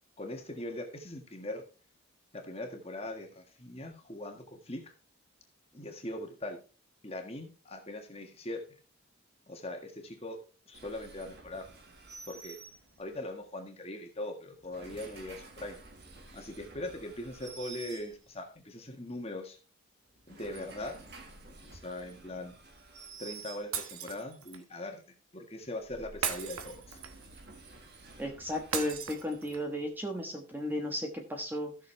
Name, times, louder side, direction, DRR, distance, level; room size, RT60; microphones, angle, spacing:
voice 1, 0.2-1.6 2.3-4.9 5.7-6.6 7.0-8.8 9.5-10.4 10.7-11.7 12.3-12.6 13.0-15.8 16.3-19.6 20.3-21.0 21.6-22.5 23.2-25.0 25.3-27.0, left 1 dB, 30° left, 4 dB, 1.6 m, -41 dB
sound 1, 10.7-13.3 14.5-18.6 20.1-24.1 25.6-29.8, right 4 dB, 50° right, 1.8 m, -51 dB
Shatter, 23.7-24.6 26.2-27.3 28.7-29.7, right 7 dB, 75° right, 1.3 m, -37 dB
voice 2, 28.2-31.8, left 1 dB, 10° right, 2 dB, 1.2 m, -34 dB
15.0 x 6.6 x 3.3 m, 0.33 s
head